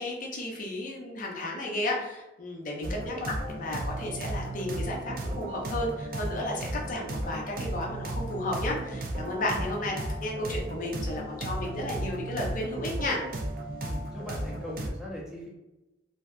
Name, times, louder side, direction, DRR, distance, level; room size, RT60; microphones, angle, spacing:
voice 1, 0.0-13.2, left 1 dB, 45° left, -1 dB, 0.5 m, -33 dB
sound 1, 2.8-14.9, right 1 dB, 50° right, 0.4 m, -35 dB
voice 2, 13.8-15.5, left 1 dB, 5° right, -5 dB, 0.6 m, -40 dB
2.6 x 2.3 x 2.3 m, 1.0 s
head